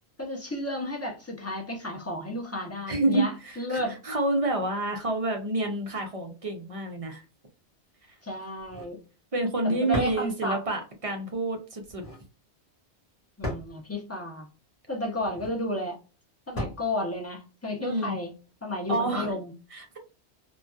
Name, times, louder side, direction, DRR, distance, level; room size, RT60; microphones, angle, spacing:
voice 1, 0.2-4.0 8.2-9.0 9.6-10.6 13.4-14.5 14.9-16.0 16.5-18.3 18.6-19.5, left 1 dB, 20° left, 0.4 m, -32 dB
voice 2, 2.9-7.2 9.3-12.0 17.8-18.2 18.9-19.4 19.7-20.0, right 2 dB, 45° right, 0.5 m, -28 dB
sound 1, 8.6-9.0 9.9-10.3 11.8-12.2 13.4-13.8 15.2-15.6 16.6-16.9, left 1 dB, 35° left, 1.0 m, -35 dB
2.6 x 2.2 x 2.2 m
omnidirectional pair, 1.1 m